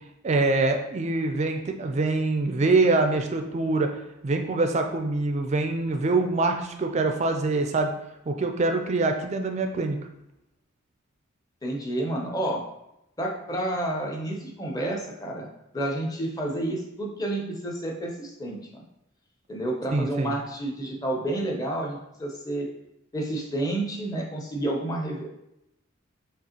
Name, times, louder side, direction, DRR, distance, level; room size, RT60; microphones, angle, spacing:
voice 1, 0.2-7.9 8.3-10.0 19.9-20.4, right 3 dB, 30° right, 5 dB, 0.3 m, -24 dB
voice 2, 11.6-12.6 13.2-15.5 15.7-18.8 19.5-22.7 23.1-25.3, right 1 dB, 15° left, 0 dB, 0.6 m, -30 dB
5.3 x 2.4 x 2.8 m, 0.85 s
head